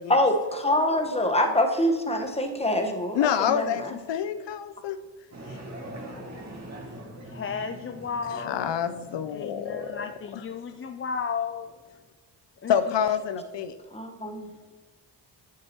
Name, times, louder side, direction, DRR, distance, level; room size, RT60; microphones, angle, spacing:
voice 1, 0.1-3.6 13.9-14.5, left 1 dB, 15° left, 4 dB, 1.2 m, -25 dB
voice 2, 3.1-5.0 5.5-5.6 8.3-10.0 10.3-10.4 12.7-13.8, left 8 dB, 75° left, 10 dB, 0.6 m, -27 dB
sound 1, 5.3-10.3, right 1 dB, 40° right, 2.1 m, -43 dB
voice 3, 7.3-8.8 9.3-11.7 12.6-12.8, left 6 dB, 30° left, 7 dB, 0.4 m, -33 dB
8.9 x 7.6 x 2.9 m, 1.4 s
cardioid pair, 70°, 43 cm